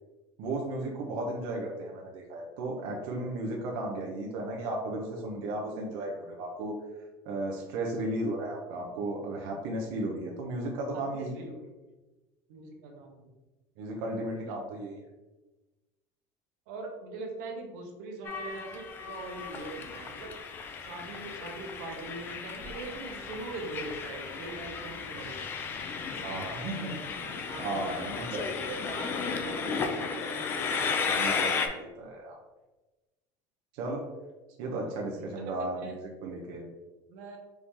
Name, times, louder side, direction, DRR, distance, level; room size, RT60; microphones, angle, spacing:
voice 1, 0.4-6.7 7.2-11.4 13.8-14.9 26.2-27.0 27.6-28.5 31.1-32.4 33.7-34.1 34.6-36.7, right 2 dB, 60° right, -1 dB, 0.7 m, -35 dB
voice 2, 11.1-11.7 12.5-13.3 14.4-14.6 16.7-20.4 20.8-25.4 26.7-30.8 34.6-35.9 37.1-37.4, right 3 dB, 85° right, 2 dB, 0.9 m, -42 dB
Train, 18.3-31.7, left 5 dB, 25° left, 0.4 m, -34 dB
4.6 x 2.7 x 3.6 m, 1.1 s
cardioid pair, 175°, 9 cm